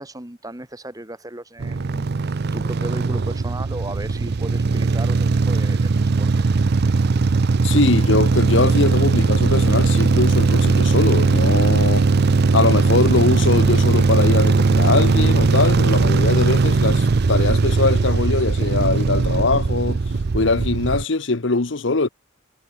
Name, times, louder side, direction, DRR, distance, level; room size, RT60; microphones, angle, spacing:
voice 1, 0.0-6.5, right 1 dB, 15° right, 1.7 m, -36 dB
sound 1, 1.6-21.0, right 3 dB, 50° right, 0.5 m, -18 dB
voice 2, 7.6-12.1 12.5-20.0 20.3-22.1, left 3 dB, 60° left, 1.0 m, -21 dB
head